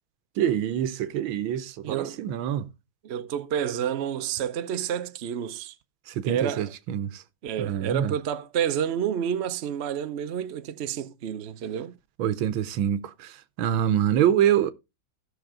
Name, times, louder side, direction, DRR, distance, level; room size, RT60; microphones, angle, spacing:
voice 1, 0.4-2.7 6.1-7.2 7.6-8.1 12.2-14.7, right 10 dB, 85° right, 1.6 m, -25 dB
voice 2, 1.8-2.2 3.0-5.8 6.2-6.7 7.4-11.9, right 9 dB, 60° right, 0.6 m, -29 dB
16.0 x 6.1 x 3.7 m
omnidirectional pair, 2.1 m